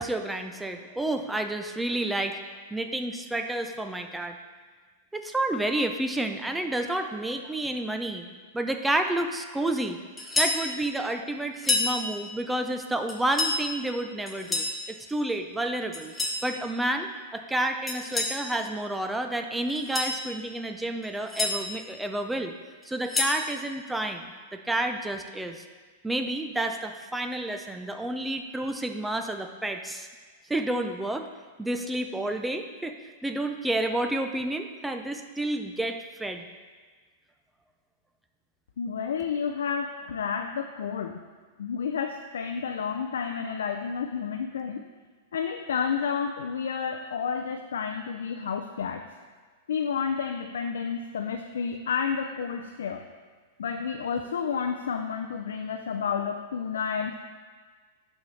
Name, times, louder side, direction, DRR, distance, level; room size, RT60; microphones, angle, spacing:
voice 1, 0.0-2.4 2.7-4.4 5.1-8.3 8.5-10.0 10.4-16.1 16.4-22.5 22.9-25.6 26.0-30.1 30.5-31.3 31.6-36.5, right 1 dB, 5° right, 6 dB, 0.5 m, -30 dB
sound 1, 10.2-10.6 11.5-11.9 13.1-13.6 14.3-14.8 15.9-16.4 17.9-18.4 19.7-20.2 21.0-21.5 22.8-23.4, left 3 dB, 10° left, 1.0 m, -28 dB
voice 2, 38.8-41.3 41.6-44.8 45.3-49.0 49.7-53.0 53.6-57.2, left 6 dB, 85° left, 4 dB, 0.4 m, -30 dB
11.0 x 4.1 x 3.3 m, 1.5 s
hypercardioid pair, 130°, 0 cm